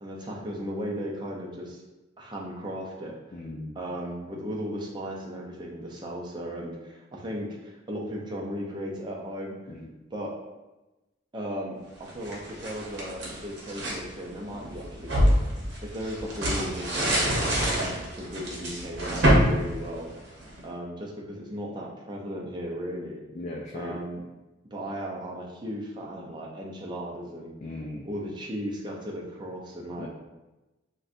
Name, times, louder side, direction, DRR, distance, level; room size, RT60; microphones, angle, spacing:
voice 1, 0.0-1.8 2.2-3.2 3.7-9.6 10.1-10.3 11.3-15.3 15.8-20.1 20.6-23.2 23.7-24.2 24.7-27.5 28.0-30.1, equal, 25° right, -2 dB, 0.5 m, -36 dB
voice 2, 3.3-3.7 9.7-9.9 19.1-19.2 23.3-24.0 27.6-28.1 30.0-30.1, left 2 dB, 35° left, -2 dB, 0.3 m, -37 dB
sound 1, 12.0-14.0 14.5-20.6, equal, 60° right, 0.9 m, -26 dB
4.0 x 2.2 x 2.5 m, 1.1 s
head